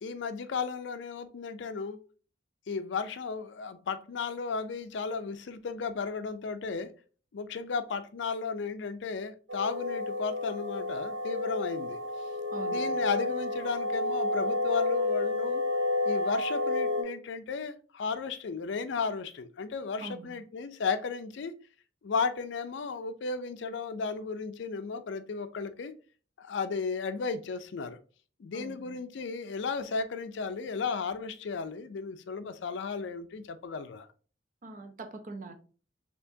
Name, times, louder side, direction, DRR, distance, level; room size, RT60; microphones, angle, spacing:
voice 1, 0.0-2.0 2.7-6.9 7.3-12.0 12.7-15.6 16.0-21.5 22.0-25.9 26.4-28.0 28.4-34.1, left 5 dB, 65° left, 0.4 m, -34 dB
sound 1, 9.5-17.0, left 2 dB, 70° right, 0.8 m, -30 dB
voice 2, 12.5-13.0 20.0-20.4 28.5-29.0 34.6-35.5, right 3 dB, 40° right, 0.5 m, -43 dB
4.4 x 2.8 x 2.7 m
head